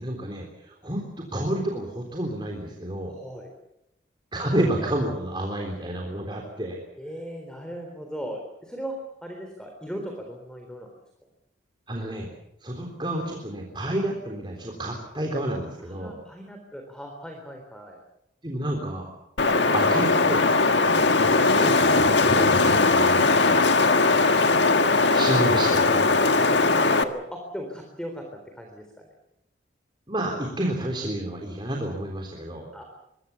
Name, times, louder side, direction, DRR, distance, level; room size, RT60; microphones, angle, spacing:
voice 1, 0.0-3.1 4.3-6.8 11.9-12.3 12.6-16.2 18.4-19.1 19.7-20.5 21.2-23.6 25.1-26.2 30.1-32.8, right 1 dB, 25° right, 1 dB, 3.6 m, -30 dB
voice 2, 3.1-3.5 7.0-10.9 15.8-18.0 23.7-24.0 26.4-29.1 32.7-32.8, equal, 5° left, 3 dB, 3.7 m, -38 dB
Wind, 19.4-27.0, left 3 dB, 65° left, 1.7 m, -19 dB
25.5 x 22.0 x 7.1 m, 0.83 s
head